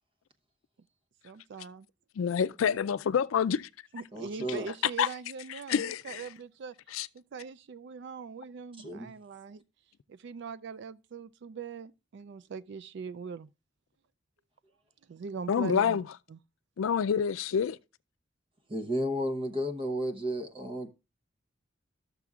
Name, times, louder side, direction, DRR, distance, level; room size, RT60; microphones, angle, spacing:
voice 1, 1.2-1.9 3.9-6.7 7.1-9.6 10.2-13.5 15.1-16.0 16.3-16.4, right 5 dB, 60° right, 0.3 m, -41 dB
voice 2, 2.2-3.6 5.0-5.1 5.7-6.2 6.9-7.1 15.5-16.0 16.8-17.8, left 7 dB, 90° left, 0.4 m, -27 dB
voice 3, 4.1-4.7 8.8-9.1 18.7-20.9, equal, 25° right, 0.9 m, -33 dB
13.0 x 6.8 x 2.4 m
head